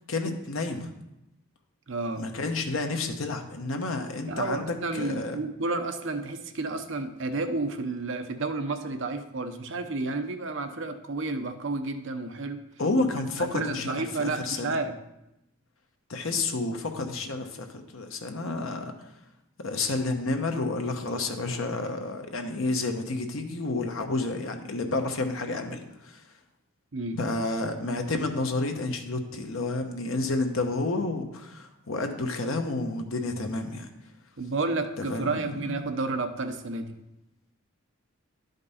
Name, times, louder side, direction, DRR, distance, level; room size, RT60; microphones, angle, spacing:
voice 1, 0.1-0.9 2.2-5.4 12.8-14.8 16.1-19.1 19.6-26.2 27.1-33.9 35.0-35.8, left 2 dB, 70° left, 5 dB, 0.9 m, -30 dB
voice 2, 1.9-2.3 4.3-12.6 13.4-14.9 26.9-27.2 34.4-36.9, right 3 dB, 60° right, 7 dB, 0.7 m, -31 dB
11.5 x 5.2 x 4.1 m, 0.89 s
head